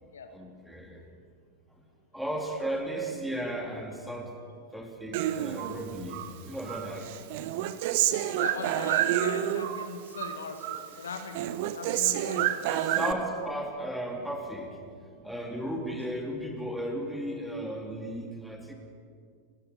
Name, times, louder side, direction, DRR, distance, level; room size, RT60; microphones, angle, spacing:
voice 1, 0.3-1.0 1.7-1.8 2.1-4.4 4.7-7.1 12.7-14.8 15.2-18.7, right 1 dB, ahead, 2 dB, 3.2 m, -35 dB
Human voice, 5.1-6.3 6.7-9.9 10.1-10.9 11.1-13.1, right 12 dB, 50° right, 1.0 m, -29 dB
voice 2, 8.4-13.1, left 4 dB, 70° left, 7 dB, 1.6 m, -40 dB
30.0 x 13.5 x 7.0 m, 2.2 s
figure-of-eight pair, 90°, 0 cm